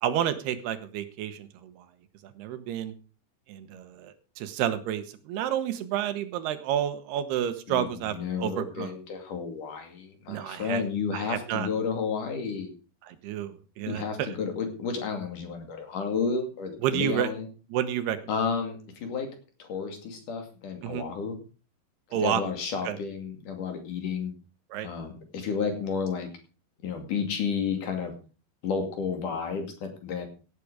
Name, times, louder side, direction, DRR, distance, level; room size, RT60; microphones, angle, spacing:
voice 1, 0.0-1.7 2.4-2.9 3.5-9.0 10.3-10.8 11.1-11.7 13.0-14.3 16.8-17.3 17.7-18.2 20.8-21.1 22.1-22.4 22.9-23.0 24.7-24.9, right 10 dB, 90° right, 11 dB, 3.2 m, -30 dB
voice 2, 7.7-12.7 13.8-17.5 18.3-19.3 19.6-21.4 22.1-24.3 24.8-26.3 26.8-28.1 28.6-30.3, left 5 dB, 55° left, 5 dB, 3.8 m, -31 dB
16.5 x 8.5 x 5.0 m, 0.36 s
omnidirectional pair, 4.6 m